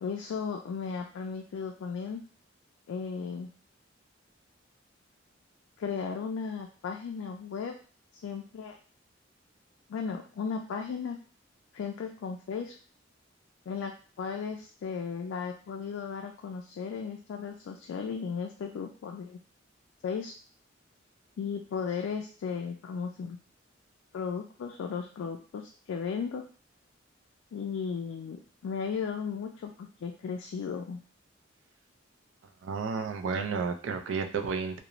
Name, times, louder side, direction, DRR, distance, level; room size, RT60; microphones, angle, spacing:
voice 1, 0.0-2.2 2.9-3.5 5.8-7.7 8.2-8.8 9.9-11.2 11.7-12.7 13.7-19.4 20.0-20.3 21.4-23.4 24.1-26.4 27.5-31.0, left 6 dB, 90° left, 2 dB, 0.3 m, -35 dB
voice 2, 32.6-34.8, right 5 dB, 80° right, 6 dB, 0.4 m, -32 dB
2.4 x 2.0 x 2.9 m, 0.41 s
head